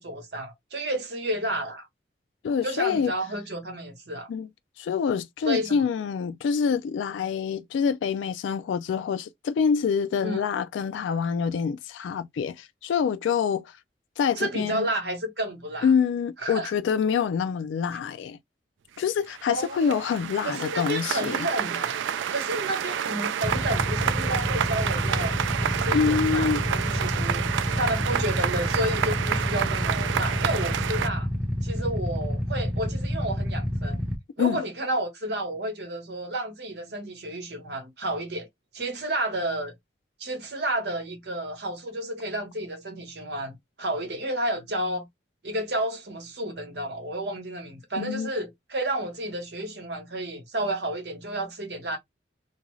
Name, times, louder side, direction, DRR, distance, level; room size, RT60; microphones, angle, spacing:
voice 1, 0.0-1.9 2.6-4.3 5.5-5.7 10.2-10.4 14.4-15.9 16.4-16.7 19.5-20.0 20.4-22.0 22.3-25.4 25.8-27.5 27.7-31.3 31.6-34.0 34.4-38.5 38.7-39.7 40.2-45.1 45.4-52.0, right 1 dB, 65° right, 1.0 m, -31 dB
voice 2, 2.4-3.1 4.3-4.5 4.8-13.7 14.2-14.9 15.8-18.4 19.0-21.5 25.9-26.7 26.9-27.0 34.4-34.6 48.0-48.3, left 6 dB, 90° left, 0.3 m, -26 dB
sound 1, 19.0-19.1 19.3-31.1, right 8 dB, 90° right, 0.3 m, -29 dB
Motorcycle / Idling, 23.4-34.2, equal, 5° right, 0.6 m, -28 dB
2.5 x 2.3 x 3.0 m
head